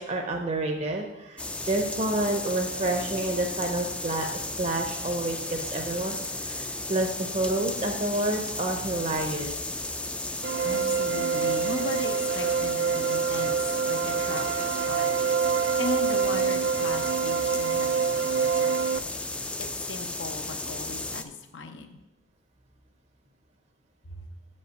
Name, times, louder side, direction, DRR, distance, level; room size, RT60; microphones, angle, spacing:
voice 1, 0.0-9.5, right 1 dB, 35° right, 3 dB, 0.7 m, -29 dB
sound 1, 1.4-21.2, left 2 dB, 5° left, 0.3 m, -34 dB
sound 2, 10.4-19.0, right 6 dB, 75° right, 0.3 m, -26 dB
voice 2, 10.6-19.1 19.6-22.0 24.0-24.3, left 3 dB, 85° left, 5 dB, 0.8 m, -38 dB
7.4 x 5.4 x 6.4 m, 0.99 s
head